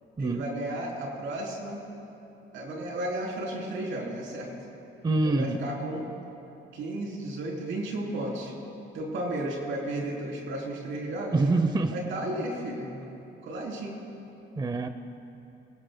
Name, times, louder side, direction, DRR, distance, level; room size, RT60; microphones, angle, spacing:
voice 1, 0.2-1.8 2.5-4.5 5.2-6.1 6.7-8.5 8.9-11.4 11.9-13.1 13.4-14.0, right 1 dB, 80° right, -2 dB, 3.4 m, -33 dB
voice 2, 5.0-5.6 11.3-11.9 14.6-14.9, right 3 dB, 20° right, 8 dB, 0.7 m, -25 dB
24.0 x 18.0 x 2.2 m, 2.9 s
cardioid pair, 90°, 20 cm